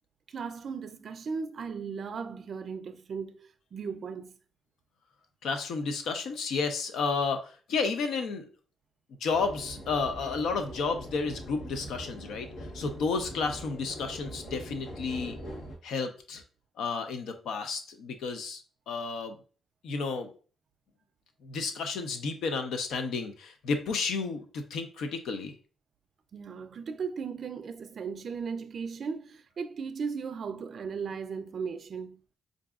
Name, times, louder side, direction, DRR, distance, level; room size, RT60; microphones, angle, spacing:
voice 1, 0.3-4.3 26.3-32.2, right 5 dB, 55° right, 0.3 m, -37 dB
voice 2, 5.4-8.4 9.2-15.4 15.8-16.4 16.8-18.6 18.9-19.4 19.8-20.3 21.4-25.5, left 4 dB, 85° left, 0.6 m, -32 dB
sound 1, 9.3-15.8, equal, 70° left, 0.9 m, -42 dB
4.7 x 2.6 x 2.3 m
cardioid pair, 100°, 0 cm